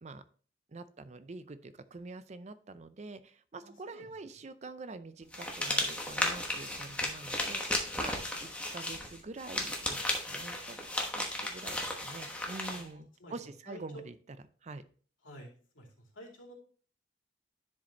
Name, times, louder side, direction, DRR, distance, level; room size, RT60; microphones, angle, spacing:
voice 1, 0.7-8.2 8.4-10.9 11.1-14.1 14.6-14.8, right 3 dB, 35° right, 13 dB, 0.5 m, -46 dB
voice 2, 3.6-4.1 12.7-14.1 15.2-16.5, equal, 85° left, 0 dB, 2.5 m, -51 dB
sound 1, 5.3-12.8, left 1 dB, 5° left, 1.1 m, -35 dB
10.5 x 5.0 x 2.9 m, 0.42 s
head